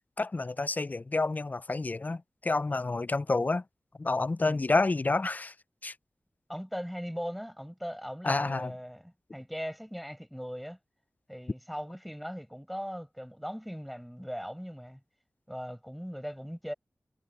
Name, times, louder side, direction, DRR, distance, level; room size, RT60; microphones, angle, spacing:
voice 1, 0.2-3.6 4.0-5.5 5.8-5.9 8.2-8.7, left 3 dB, 35° left, 0.4 m, -29 dB
voice 2, 4.4-4.7 6.5-10.8 11.3-15.0 15.5-16.7, equal, ahead, 7.8 m, -39 dB
wide cardioid pair, 60°, 5 cm